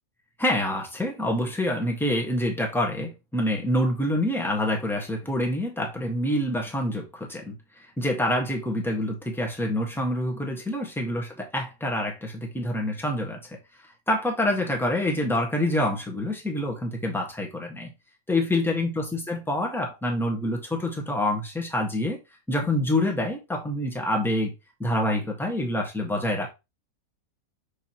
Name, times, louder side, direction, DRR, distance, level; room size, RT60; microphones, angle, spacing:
voice 1, 0.4-13.4 14.1-17.9 18.3-22.2 22.5-24.5 24.8-26.5, left 1 dB, ahead, 1.4 m, -26 dB
6.2 x 5.3 x 3.0 m
omnidirectional pair, 1.7 m